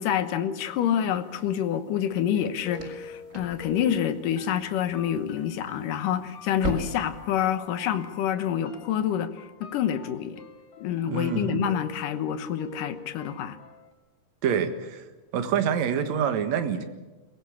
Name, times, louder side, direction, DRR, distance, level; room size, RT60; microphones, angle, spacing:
voice 1, 0.0-9.3 9.6-10.4 10.8-13.6, left 9 dB, 75° left, 2.8 m, -27 dB
sound 1, 1.1-8.2, right 2 dB, 25° right, 2.4 m, -41 dB
sound 2, 2.3-13.9, left 3 dB, 55° left, 3.5 m, -46 dB
voice 2, 11.1-11.7 14.4-15.1 15.3-16.8, right 7 dB, 60° right, 2.6 m, -26 dB
22.5 x 17.5 x 8.6 m
omnidirectional pair, 3.8 m